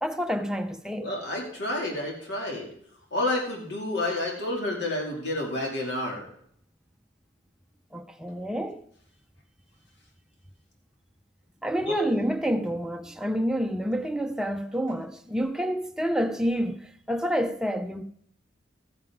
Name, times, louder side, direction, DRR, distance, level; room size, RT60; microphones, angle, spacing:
voice 1, 0.0-1.1 7.9-8.8 11.6-18.0, equal, 5° right, 0.6 m, -28 dB
voice 2, 1.0-2.7 3.1-6.3 11.8-12.0, left 1 dB, 60° left, 2.4 m, -30 dB
14.0 x 9.8 x 3.6 m
head